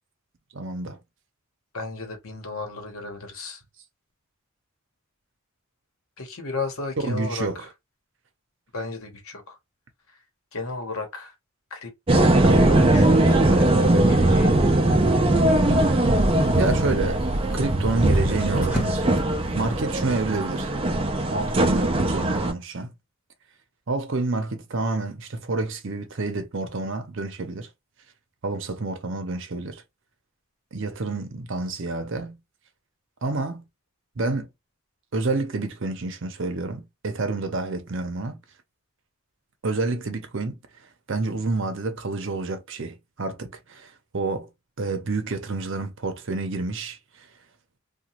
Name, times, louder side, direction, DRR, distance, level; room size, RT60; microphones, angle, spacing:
voice 1, 0.5-1.0 7.0-7.6 16.5-17.2 17.5-19.1 19.5-20.7 21.3-22.9 23.9-27.7 28.4-29.8 30.7-32.4 33.2-33.6 34.2-34.5 35.1-38.4 39.6-40.6 41.1-44.5 44.8-47.0, right 3 dB, 60° right, 0.7 m, -28 dB
voice 2, 1.7-3.6 6.2-7.7 8.7-9.6 10.1-10.2 10.5-11.3 11.7-14.6, left 3 dB, 75° left, 1.0 m, -34 dB
sound 1, 12.1-22.5, right 1 dB, 25° right, 0.4 m, -20 dB
sound 2, 16.1-21.2, equal, 5° right, 1.3 m, -36 dB
2.9 x 2.3 x 2.9 m
head